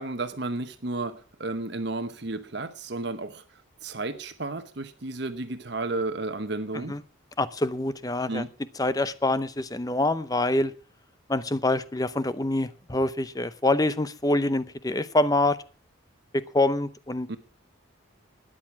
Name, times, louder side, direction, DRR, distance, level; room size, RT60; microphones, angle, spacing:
voice 1, 0.0-3.4 3.8-7.0 8.3-8.5 17.3-17.4, right 2 dB, 55° right, 9 dB, 1.0 m, -32 dB
voice 2, 7.4-8.4 8.7-10.7 11.3-15.6 16.3-17.4, left 2 dB, 20° left, 15 dB, 0.6 m, -25 dB
13.5 x 10.0 x 5.9 m, 0.39 s
head